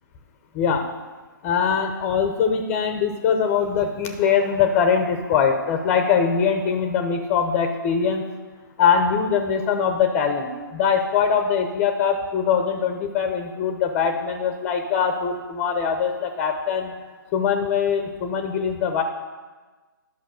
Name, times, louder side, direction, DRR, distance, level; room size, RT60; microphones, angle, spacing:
voice 1, 0.5-0.9 1.4-8.2 8.8-16.9 17.3-19.0, left 6 dB, 20° left, 6 dB, 0.8 m, -22 dB
11.0 x 5.7 x 6.3 m, 1.3 s
figure-of-eight pair, 140°, 12 cm